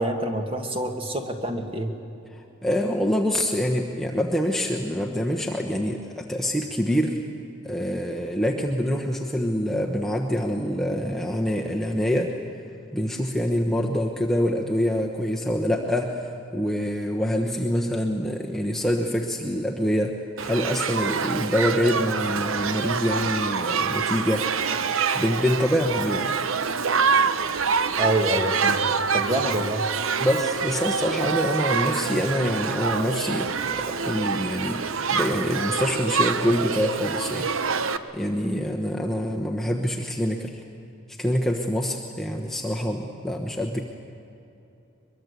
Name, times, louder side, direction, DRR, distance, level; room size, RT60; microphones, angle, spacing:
voice 1, 0.0-1.9 28.0-28.8 29.1-29.8, right 1 dB, 25° right, 4 dB, 1.8 m, -26 dB
voice 2, 2.3-7.2 7.6-12.3 12.9-20.1 20.4-24.5 25.1-26.4 30.2-37.5 38.1-40.6 41.2-43.8, equal, ahead, 0 dB, 1.1 m, -25 dB
Shout / Human group actions, 20.4-38.0, right 5 dB, 80° right, 0.9 m, -26 dB
23.0 x 22.5 x 8.2 m, 2.8 s
head